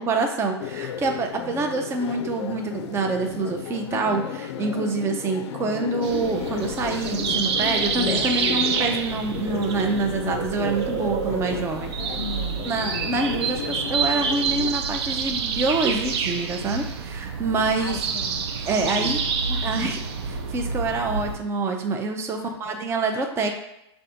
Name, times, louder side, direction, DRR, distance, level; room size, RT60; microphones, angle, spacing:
voice 1, 0.0-11.9 12.6-18.0 18.6-19.2 19.6-20.0 20.2-23.5, right 3 dB, 15° right, 4 dB, 0.5 m, -26 dB
sound 1, 0.6-14.8, left 9 dB, 70° left, 0.4 m, -33 dB
sound 2, 6.0-21.4, right 6 dB, 65° right, 0.6 m, -28 dB
voice 2, 12.2-12.7 17.8-18.4 18.7-19.7 22.3-23.2, left 5 dB, 30° left, 2 dB, 1.0 m, -39 dB
5.4 x 3.4 x 2.6 m, 0.85 s
hypercardioid pair, 115°, 15 cm